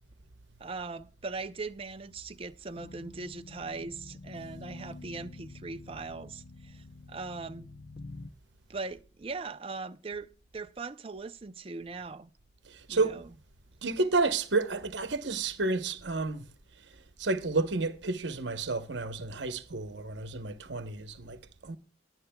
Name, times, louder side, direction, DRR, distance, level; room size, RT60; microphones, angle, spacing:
voice 1, 0.6-7.7 8.7-10.3 10.5-12.3 12.9-13.3, right 3 dB, 30° right, 0.5 m, -40 dB
sound 1, 2.7-8.3, left 2 dB, 55° left, 0.6 m, -47 dB
voice 2, 12.7-13.2 13.8-16.5 17.2-21.8, right 3 dB, 75° right, 1.0 m, -31 dB
20.0 x 11.0 x 2.3 m
head